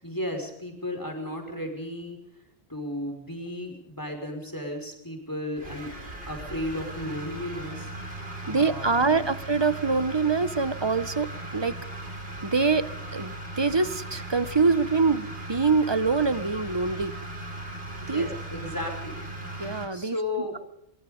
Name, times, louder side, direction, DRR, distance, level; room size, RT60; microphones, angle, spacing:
voice 1, 0.0-2.2 2.7-5.9 6.3-9.3 18.0-19.3 19.9-20.6, left 1 dB, 15° left, 3 dB, 5.7 m, -34 dB
sound 1, 5.6-19.9, right 1 dB, 60° right, 5.0 m, -38 dB
voice 2, 8.5-11.8 12.4-17.1 18.1-18.3 19.6-20.2, right 4 dB, 25° right, 14 dB, 1.1 m, -25 dB
23.5 x 22.5 x 5.3 m, 0.77 s
omnidirectional pair, 1.1 m